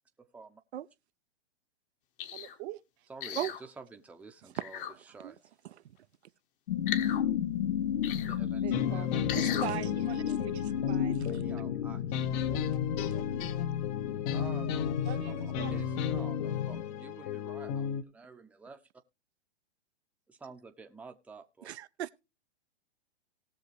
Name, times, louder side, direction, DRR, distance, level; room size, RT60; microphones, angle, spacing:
voice 1, 0.2-0.6 3.1-5.4 8.3-9.2 11.3-12.2 14.3-18.9 20.3-21.7, right 4 dB, 5° right, 0.7 m, -50 dB
sound 1, 2.2-2.6 3.2-3.6 4.5-4.9 6.9-7.2 8.0-8.4 9.3-9.7 10.3-10.4, left 10 dB, 50° left, 1.4 m, -37 dB
voice 2, 2.3-3.1 8.6-10.5 15.0-16.3, right 16 dB, 35° right, 0.8 m, -46 dB
sound 2, 6.7-16.8, left 9 dB, 80° left, 0.8 m, -33 dB
sound 3, 8.7-18.0, left 8 dB, 35° left, 0.7 m, -35 dB
voice 3, 9.4-11.4 21.6-22.1, right 11 dB, 75° right, 0.6 m, -38 dB
19.0 x 6.5 x 3.1 m
hypercardioid pair, 125°, 33 cm